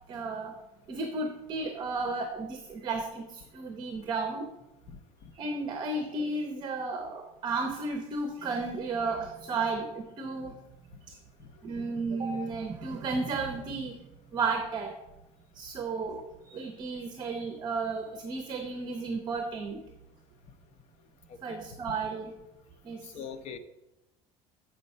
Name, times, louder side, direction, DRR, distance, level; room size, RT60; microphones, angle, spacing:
voice 1, 0.1-0.6 0.9-4.4 5.3-10.6 11.1-11.2 11.6-14.1 14.3-15.0 15.5-19.8 21.4-22.3 22.8-23.0, right 3 dB, 35° right, 5 dB, 0.8 m, -33 dB
voice 2, 4.9-5.3 11.4-11.5 21.3-21.6 23.0-23.6, left 7 dB, 55° left, 10 dB, 0.7 m, -43 dB
7.5 x 5.0 x 5.4 m, 0.97 s
cardioid pair, 150°, 13 cm